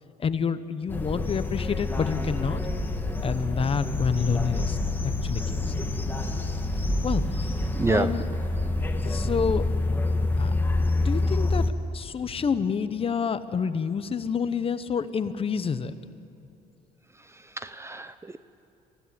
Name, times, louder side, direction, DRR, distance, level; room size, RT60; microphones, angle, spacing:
voice 1, 0.2-2.6 3.2-4.8 5.0-5.6 7.0-7.5 7.9-8.2 9.0-9.7 10.4-10.5 11.0-16.0, left 6 dB, 35° left, 12 dB, 1.0 m, -28 dB
sound 1, 0.9-11.7, left 2 dB, 10° left, 1.6 m, -27 dB
voice 2, 7.7-8.2 17.2-18.4, right 3 dB, 15° right, 12 dB, 0.7 m, -29 dB
24.0 x 16.0 x 9.6 m, 2.7 s
cardioid pair, 110°, 17 cm